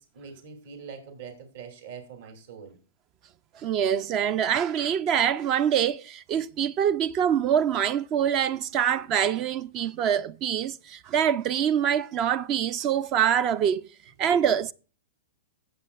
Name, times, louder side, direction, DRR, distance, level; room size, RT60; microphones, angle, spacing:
voice 1, 0.0-2.8, right 6 dB, 65° right, 2.7 m, -43 dB
voice 2, 3.6-13.9 14.2-14.7, right 9 dB, 35° right, 0.4 m, -25 dB
16.5 x 7.4 x 2.4 m
hypercardioid pair, 145°, 0 cm